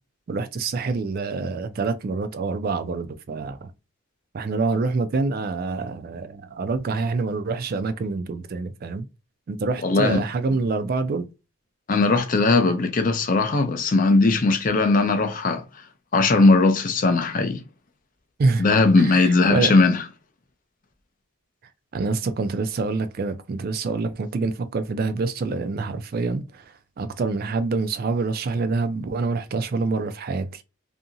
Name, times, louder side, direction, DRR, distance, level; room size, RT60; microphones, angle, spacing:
voice 1, 0.3-3.7 4.3-9.1 9.5-11.3 18.4-18.7 19.0-19.8 21.9-30.6, right 3 dB, 45° right, 0.3 m, -26 dB
voice 2, 9.8-10.2 11.9-15.6 16.1-17.6 18.6-20.0, left 3 dB, 40° left, 0.5 m, -19 dB
2.7 x 2.6 x 2.4 m
head